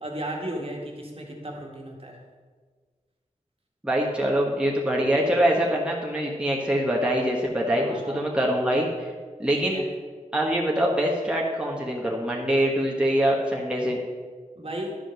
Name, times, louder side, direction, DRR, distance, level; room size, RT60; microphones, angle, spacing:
voice 1, 0.0-2.2 7.7-8.2 9.5-9.8 14.6-15.0, right 1 dB, 45° right, -1 dB, 1.9 m, -35 dB
voice 2, 3.8-9.1 9.4-9.8 10.3-14.0, right 1 dB, 10° right, -2 dB, 1.3 m, -24 dB
11.0 x 5.1 x 6.3 m, 1.5 s
wide cardioid pair, 75°, 13 cm